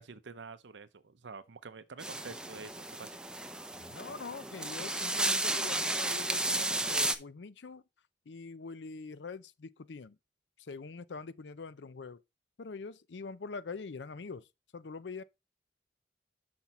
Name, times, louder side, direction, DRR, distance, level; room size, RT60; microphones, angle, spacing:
voice 1, 0.0-3.2, right 4 dB, 85° right, 0.7 m, -48 dB
sound 1, 2.0-7.1, right 2 dB, 5° right, 0.5 m, -33 dB
voice 2, 3.9-7.8 8.3-10.2 10.6-12.2 12.6-14.5 14.7-15.2, left 4 dB, 75° left, 0.5 m, -44 dB
6.0 x 5.9 x 4.2 m
head